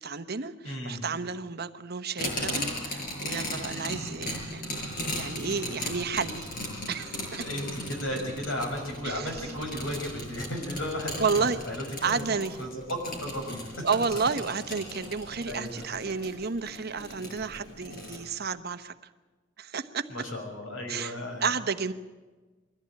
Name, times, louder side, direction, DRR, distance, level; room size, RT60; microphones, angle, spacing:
voice 1, 0.0-4.8 5.1-6.5 6.9-7.5 9.0-9.3 11.2-11.6 12.0-12.6 13.8-18.9 19.6-20.1 20.9-21.1 21.4-21.9, right 5 dB, 55° right, 10 dB, 1.1 m, -31 dB
voice 2, 0.6-1.0 7.4-12.2 12.6-12.8 13.2-13.8 15.5-15.9 20.1-21.5, left 1 dB, 90° left, 3 dB, 6.0 m, -35 dB
sound 1, 2.2-18.2, left 1 dB, 45° left, 7.0 m, -37 dB
23.0 x 15.0 x 8.8 m, 1.3 s
head